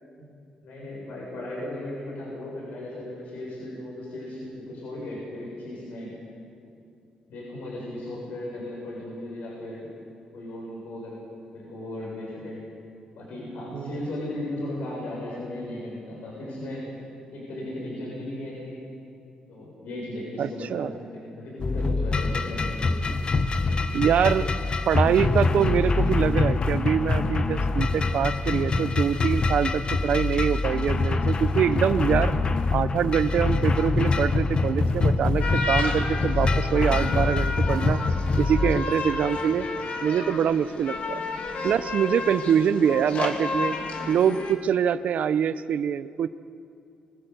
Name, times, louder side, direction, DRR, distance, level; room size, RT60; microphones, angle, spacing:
voice 1, 0.6-6.1 7.3-9.9 10.3-11.2 11.5-12.6 13.2-16.8 17.3-18.8 19.5-23.0, left 1 dB, 85° left, -5 dB, 7.3 m, -36 dB
voice 2, 20.4-20.9 23.9-24.5 24.9-32.3 32.7-38.0 38.4-39.7 40.0-41.2 41.6-43.7 44.1-46.3, right 8 dB, 70° right, 14 dB, 0.7 m, -24 dB
sound 1, 21.6-38.8, left 3 dB, 40° left, 1.1 m, -24 dB
sound 2, 35.4-44.5, left 3 dB, 60° left, 2.6 m, -32 dB
25.5 x 17.0 x 8.1 m, 2.6 s
cardioid pair, 95°, 3 cm